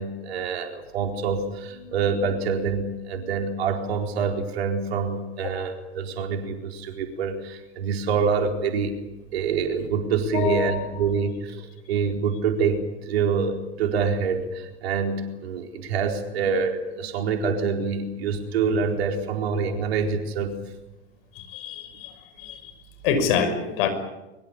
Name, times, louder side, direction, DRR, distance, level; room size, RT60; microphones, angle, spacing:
voice 1, 0.0-9.0 9.3-20.6, right 5 dB, 60° right, 4 dB, 4.3 m, -26 dB
voice 2, 10.3-10.7 21.4-22.1 22.4-22.7 23.0-23.9, left 6 dB, 55° left, 8 dB, 5.8 m, -26 dB
23.0 x 22.5 x 8.8 m, 1.0 s
figure-of-eight pair, 90°, 35 cm